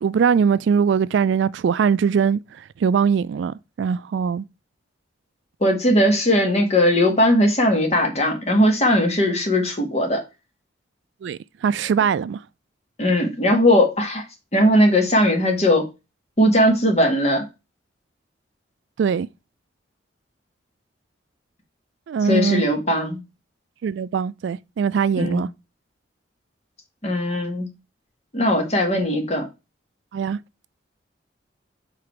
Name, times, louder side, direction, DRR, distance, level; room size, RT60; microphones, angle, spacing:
voice 1, 0.0-4.4 11.2-12.4 19.0-19.3 22.1-22.6 23.8-25.5 30.1-30.4, right 6 dB, 70° right, 0.3 m, -21 dB
voice 2, 5.6-10.2 13.0-14.2 14.5-15.9 16.4-17.4 22.2-23.2 25.2-25.4 27.0-27.7 28.3-29.5, left 1 dB, 35° left, 1.7 m, -19 dB
5.1 x 4.1 x 5.8 m
head